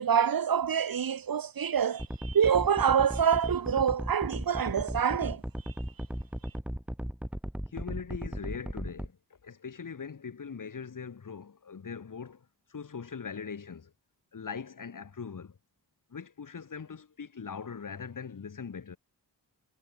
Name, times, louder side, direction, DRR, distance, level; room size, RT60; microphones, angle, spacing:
voice 1, 0.0-5.7, right 8 dB, 60° right, 1.8 m, -26 dB
sound 1, 2.0-9.1, equal, 5° right, 2.3 m, -36 dB
voice 2, 7.7-13.9 14.3-15.6 16.1-19.0, left 6 dB, 50° left, 5.3 m, -41 dB
wide cardioid pair, 145°, 39 cm